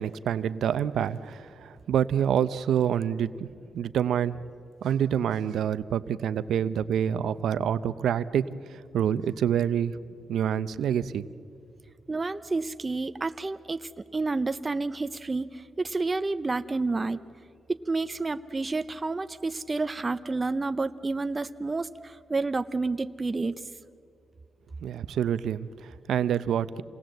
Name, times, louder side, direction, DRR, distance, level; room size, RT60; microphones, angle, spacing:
voice 1, 0.0-3.5 3.7-4.4 4.8-10.0 10.3-11.2 24.8-26.8, right 9 dB, 75° right, 14 dB, 0.6 m, -27 dB
voice 2, 12.1-17.2 17.7-23.6, right 3 dB, 20° right, 11 dB, 0.5 m, -30 dB
27.0 x 19.0 x 7.8 m, 2.4 s
wide cardioid pair, 145°, 0 cm